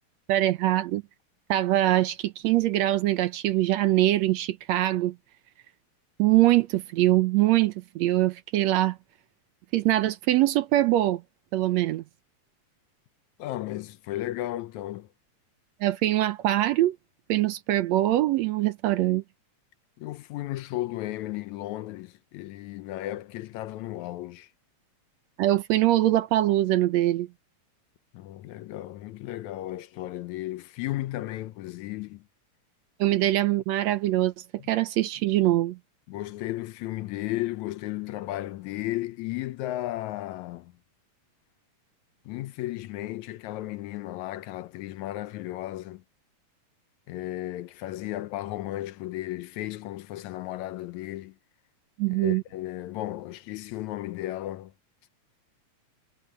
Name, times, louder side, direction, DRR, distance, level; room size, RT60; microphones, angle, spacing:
voice 1, 0.3-1.0 1.5-5.2 6.2-9.0 9.7-11.2 11.5-12.0 15.8-17.0 17.3-19.2 25.4-27.3 33.0-34.3 34.7-35.8 52.0-52.4, right 15 dB, 75° right, 1.8 m, -23 dB
voice 2, 13.4-15.1 20.0-24.5 28.1-32.2 34.6-34.7 36.1-40.7 42.3-46.0 47.1-51.4 52.1-54.7, left 15 dB, 75° left, 2.0 m, -34 dB
omnidirectional pair, 3.5 m